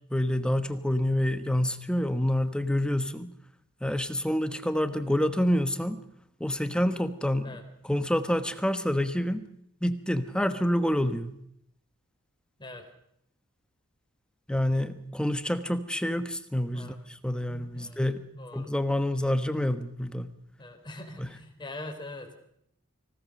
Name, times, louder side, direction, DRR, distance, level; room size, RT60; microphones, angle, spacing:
voice 1, 0.1-3.3 3.8-6.0 6.4-7.6 7.8-9.5 9.8-11.4 14.5-16.9 17.2-18.3 18.5-20.3 21.2-21.3, left 1 dB, 5° left, 9 dB, 1.1 m, -27 dB
voice 2, 17.4-18.0 18.3-18.7 20.6-22.4, left 2 dB, 20° left, 4 dB, 3.7 m, -42 dB
25.5 x 17.0 x 6.5 m, 0.73 s
head